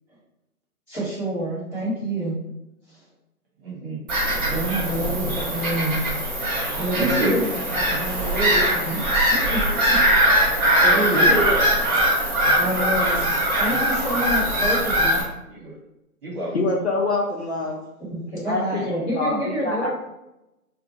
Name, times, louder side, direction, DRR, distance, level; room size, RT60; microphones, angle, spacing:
voice 1, 0.9-2.4 2.9-3.0 4.5-6.0 6.7-10.0 10.8-11.3 12.6-13.2 13.6-15.2 18.1-19.9, right 1 dB, 10° left, -10 dB, 1.2 m, -28 dB
voice 2, 3.6-4.0 6.9-7.4 10.8-11.7 12.6-12.7 15.5-15.8 16.2-16.5, right 1 dB, 35° right, -5 dB, 1.2 m, -26 dB
Bird vocalization bird call bird song / Gull seagull, 4.1-15.2, right 1 dB, 15° right, 1.3 m, -21 dB
voice 3, 16.5-17.8 18.5-19.9, left 2 dB, 50° left, -1 dB, 0.5 m, -25 dB
2.4 x 2.3 x 4.0 m, 0.91 s
hypercardioid pair, 150°, 46 cm